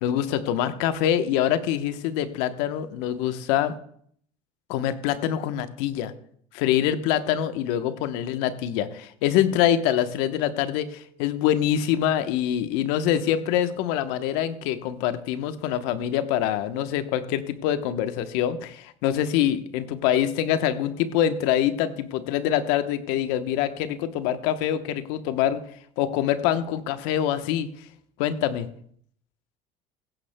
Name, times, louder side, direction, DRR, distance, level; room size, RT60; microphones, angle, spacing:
voice 1, 0.0-3.7 4.7-6.1 6.5-25.6 26.0-27.7 28.2-28.7, left 10 dB, 75° left, 10 dB, 1.0 m, -25 dB
16.0 x 14.5 x 2.2 m, 0.63 s
supercardioid pair, 85°, 17 cm